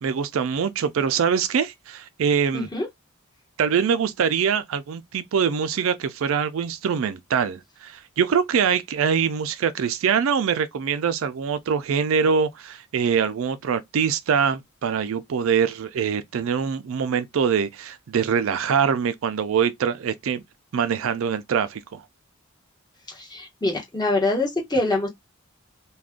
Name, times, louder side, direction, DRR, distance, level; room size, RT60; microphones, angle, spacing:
voice 1, 0.0-2.7 3.6-20.4 20.7-22.0, right 7 dB, 70° right, 0.4 m, -24 dB
voice 2, 2.5-2.9 23.2-25.1, left 2 dB, 20° left, 1.1 m, -24 dB
2.4 x 2.2 x 3.5 m
head